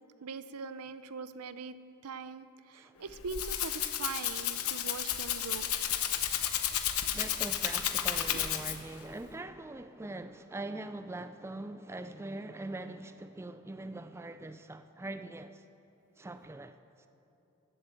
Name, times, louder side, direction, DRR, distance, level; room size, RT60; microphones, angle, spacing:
voice 1, 0.2-1.8 2.0-5.7 8.3-8.4, right 4 dB, 85° right, 0.6 m, -41 dB
Rattle (instrument), 3.0-9.0, left 10 dB, 75° left, 0.9 m, -32 dB
voice 2, 7.1-15.6 16.2-17.1, right 2 dB, 10° right, 0.3 m, -42 dB
17.0 x 7.8 x 7.6 m
head